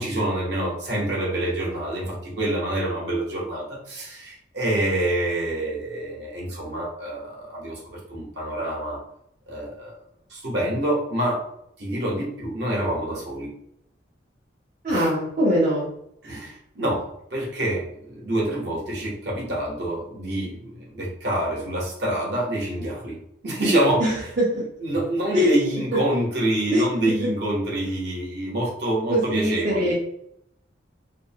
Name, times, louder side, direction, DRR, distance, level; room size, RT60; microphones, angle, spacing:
voice 1, 0.0-9.0 9.5-10.0 10.3-11.4 11.8-13.5 14.9-15.1 16.2-17.0 17.3-23.2 23.4-24.3 24.5-29.9, right 1 dB, 60° right, -4 dB, 0.9 m, -27 dB
voice 2, 14.8-15.9 24.0-24.6 25.3-25.5 26.7-26.8 29.1-29.9, equal, 40° right, -8 dB, 0.6 m, -22 dB
2.6 x 2.1 x 2.7 m, 0.73 s
head